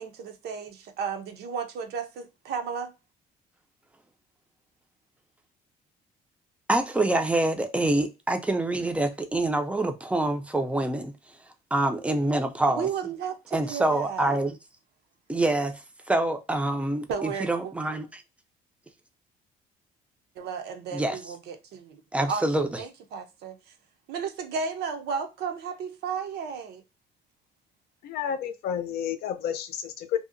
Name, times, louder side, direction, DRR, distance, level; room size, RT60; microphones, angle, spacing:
voice 1, 0.0-2.9 12.7-14.3 17.1-17.7 20.4-22.0 22.3-23.7 24.1-26.8, right 6 dB, 75° right, 0.6 m, -34 dB
voice 2, 6.7-11.1 11.7-12.9 13.5-14.6 15.3-18.2 20.9-21.2 22.1-22.7, right 2 dB, 5° right, 0.4 m, -26 dB
voice 3, 28.0-30.2, left 9 dB, 70° left, 0.5 m, -30 dB
2.7 x 2.0 x 2.5 m
cardioid pair, 110°, 17 cm